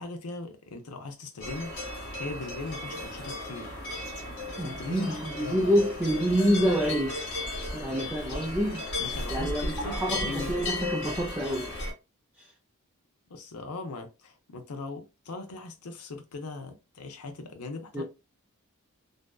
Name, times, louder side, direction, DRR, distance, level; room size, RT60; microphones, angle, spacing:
voice 1, 0.0-1.8 2.2-3.8 4.6-5.8 9.0-10.7 13.3-18.0, left 3 dB, 85° left, 0.6 m, -39 dB
sound 1, 1.4-11.9, left 2 dB, 55° left, 1.5 m, -35 dB
voice 2, 4.6-7.2 7.7-8.8 9.3-11.7 12.4-12.5 17.9-18.0, equal, 10° right, 0.4 m, -27 dB
2.6 x 2.2 x 2.3 m
head